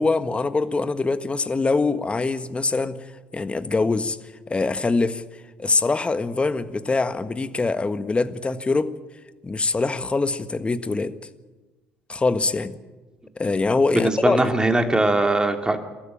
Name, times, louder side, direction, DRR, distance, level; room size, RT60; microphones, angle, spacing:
voice 1, 0.0-3.0 3.3-4.2 4.5-5.2 5.6-8.9 9.4-11.1 12.1-12.8 13.4-14.4, left 3 dB, 20° left, 11 dB, 1.5 m, -23 dB
voice 2, 13.9-15.8, right 2 dB, 15° right, 5 dB, 3.0 m, -21 dB
28.5 x 13.5 x 9.0 m, 1.2 s
hypercardioid pair, 55°, 5 cm